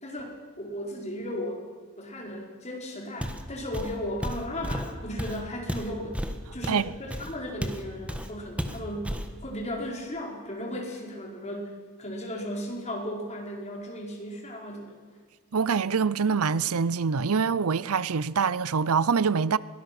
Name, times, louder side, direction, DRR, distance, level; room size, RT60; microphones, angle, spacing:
voice 1, 0.0-1.7 2.0-6.2 6.5-9.1 9.4-11.7 12.0-15.0, equal, 30° left, 4.5 m, -35 dB
Walk footsteps, 3.2-3.5 3.7-7.8 8.1-8.3 8.6-9.3, equal, 5° right, 1.5 m, -33 dB
voice 2, 15.5-19.6, right 5 dB, 85° right, 0.6 m, -25 dB
22.5 x 19.0 x 6.1 m
head